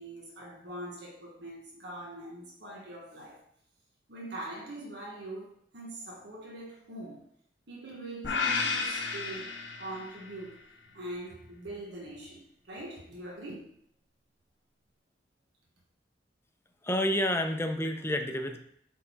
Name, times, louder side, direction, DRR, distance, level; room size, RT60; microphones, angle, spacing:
voice 1, 0.0-3.4 4.1-7.3 7.7-10.6 10.9-13.7, right 1 dB, 65° right, -2 dB, 1.4 m, -43 dB
sound 1, 8.2-10.5, left 4 dB, 80° left, 1.1 m, -32 dB
voice 2, 16.8-18.6, left 1 dB, 15° left, 6 dB, 0.7 m, -29 dB
8.4 x 3.8 x 4.6 m, 0.68 s
head